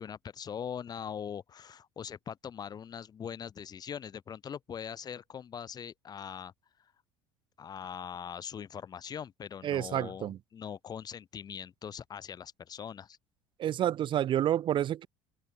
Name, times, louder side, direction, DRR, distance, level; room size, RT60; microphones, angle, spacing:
voice 1, 0.0-6.5 7.6-13.2, left 8 dB, 30° left, 1.1 m, -41 dB
voice 2, 9.6-10.4 13.6-15.1, right 11 dB, 40° right, 0.9 m, -29 dB
open air
figure-of-eight pair, 65°, 13 cm